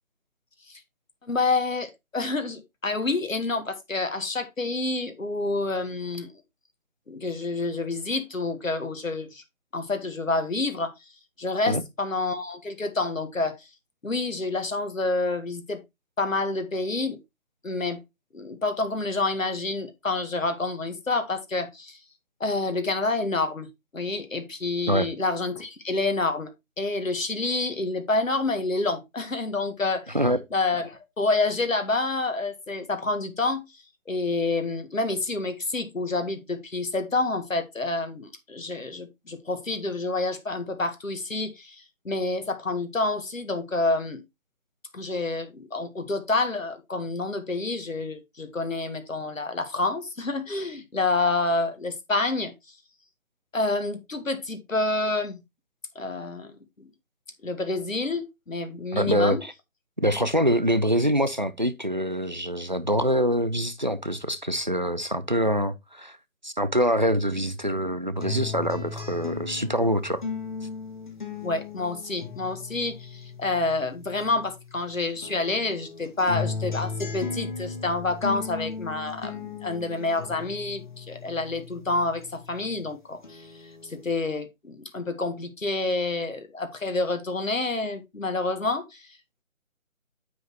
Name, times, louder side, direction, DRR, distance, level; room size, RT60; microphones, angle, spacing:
voice 1, 1.2-6.3 7.1-9.4 9.7-10.9 11.4-13.7 14.0-15.8 16.2-17.2 17.6-18.0 18.3-22.0 22.4-23.7 23.9-26.5 26.8-30.2 30.5-44.2 44.9-52.7 53.5-55.4 55.9-56.5 57.4-59.4 71.4-89.1, left 3 dB, 70° left, 1.7 m, -28 dB
voice 2, 58.9-59.5 60.0-66.2 66.4-70.2, equal, 35° right, 0.5 m, -25 dB
sound 1, 68.2-74.8 75.2-82.8 83.2-84.2, left 5 dB, 35° left, 1.7 m, -37 dB
9.3 x 6.3 x 3.1 m
figure-of-eight pair, 155°, 41 cm